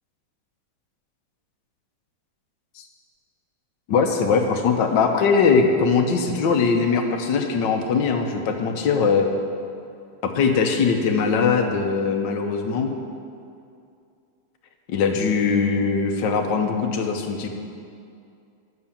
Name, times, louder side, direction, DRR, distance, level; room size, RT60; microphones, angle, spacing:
voice 1, 3.9-9.3 10.2-12.9 14.9-17.5, left 5 dB, 70° left, 4 dB, 1.5 m, -21 dB
9.8 x 6.8 x 7.2 m, 2.5 s
omnidirectional pair, 2.2 m